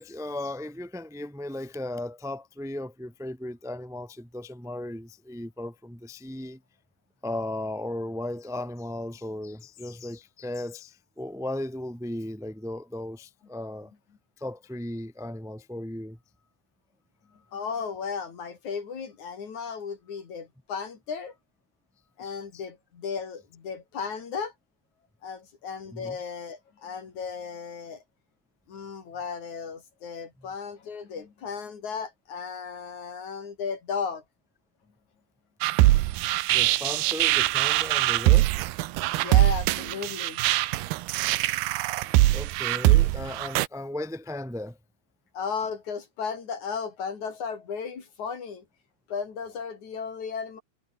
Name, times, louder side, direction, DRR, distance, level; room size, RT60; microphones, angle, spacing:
voice 1, 0.0-6.6 7.2-13.9 14.4-16.2 22.2-22.6 25.9-26.2 36.5-38.5 42.3-44.8, left 1 dB, 5° right, 0.6 m, -36 dB
voice 2, 17.5-21.4 22.2-24.5 25.2-28.0 28.7-34.2 39.2-40.4 45.3-48.6 49.1-50.6, left 6 dB, 40° left, 3.7 m, -35 dB
sound 1, 35.6-43.7, right 17 dB, 85° right, 2.2 m, -22 dB
omnidirectional pair, 5.7 m